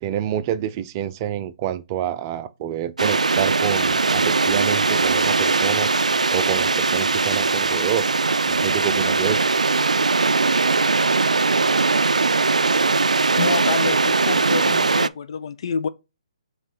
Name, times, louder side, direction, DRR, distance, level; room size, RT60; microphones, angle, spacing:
voice 1, 0.0-5.9 6.3-8.1 8.5-9.4, right 10 dB, 30° right, 0.5 m, -27 dB
sound 1, 3.0-15.1, right 3 dB, 85° right, 0.3 m, -20 dB
voice 2, 13.4-15.9, left 6 dB, 55° left, 0.6 m, -27 dB
7.4 x 3.2 x 4.0 m
figure-of-eight pair, 140°, 4 cm